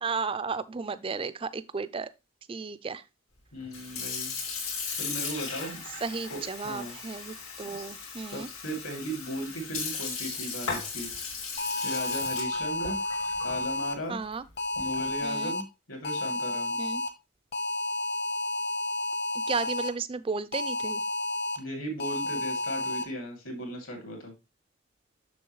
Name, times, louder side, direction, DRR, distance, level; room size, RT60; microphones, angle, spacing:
voice 1, 0.0-2.1 2.5-3.0 6.0-8.5 14.1-14.4 15.2-15.6 16.8-17.0 19.5-21.0, right 4 dB, 25° right, 0.4 m, -34 dB
voice 2, 3.5-5.8 6.3-7.0 7.6-8.0 8.3-11.1 11.8-13.0 13.4-14.2 14.8-16.8 21.6-24.3, equal, 75° left, 2.8 m, -37 dB
Sink (filling or washing) / Fill (with liquid), 3.6-15.2, left 5 dB, 90° left, 3.0 m, -37 dB
sound 1, 11.6-13.9 14.6-15.6 16.0-17.1 17.5-19.9 20.5-21.6 22.0-23.0, left 2 dB, 50° left, 1.1 m, -31 dB
7.0 x 6.3 x 3.1 m
head